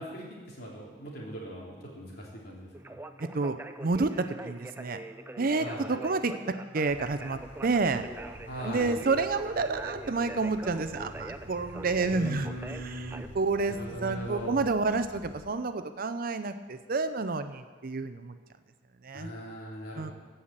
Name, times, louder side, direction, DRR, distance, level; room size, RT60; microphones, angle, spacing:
voice 1, 0.0-2.9 5.6-5.9 8.5-8.9 12.1-13.2 13.8-14.6 19.1-20.1, right 1 dB, 60° left, -3 dB, 3.2 m, -40 dB
Conversation, 2.7-13.3, right 2 dB, 10° right, 0.5 m, -43 dB
voice 2, 3.2-5.0 5.4-8.0 8.6-18.4 19.0-19.3 20.0-20.1, right 3 dB, 50° right, 10 dB, 0.6 m, -30 dB
sound 1, 6.9-15.5, equal, 10° left, 1.4 m, -50 dB
15.0 x 5.7 x 7.4 m, 1.5 s
head